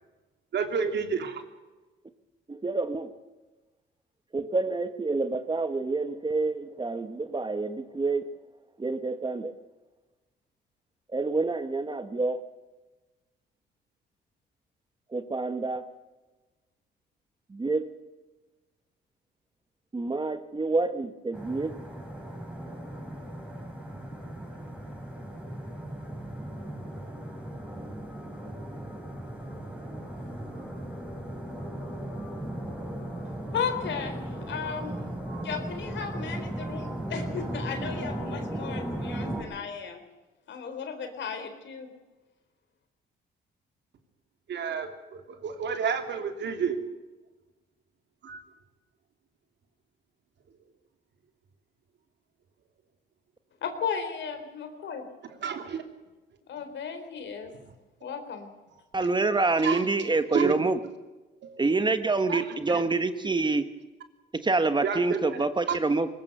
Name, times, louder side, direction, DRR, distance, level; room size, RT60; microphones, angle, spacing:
voice 1, 0.5-1.4 44.5-46.8 48.2-48.4 55.4-55.8 59.6-59.8 60.3-60.5 61.4-61.6 62.3-62.8 64.8-65.4 65.7-65.8, right 6 dB, 65° right, 5 dB, 3.1 m, -30 dB
voice 2, 2.5-3.1 4.3-8.3 8.8-9.5 11.1-12.4 15.1-15.8 17.5-17.9 19.9-21.8 58.9-60.8 61.6-63.7 64.4-66.1, right 3 dB, 25° right, 10 dB, 1.4 m, -27 dB
sound 1, 21.3-39.4, right 1 dB, 5° right, 6.8 m, -37 dB
voice 3, 33.5-34.9 35.3-40.0 40.5-41.9 53.6-55.1 56.5-57.5 58.0-58.5, left 6 dB, 65° left, 7 dB, 4.0 m, -35 dB
21.5 x 19.0 x 6.8 m, 1.2 s
cardioid pair, 90°, 20 cm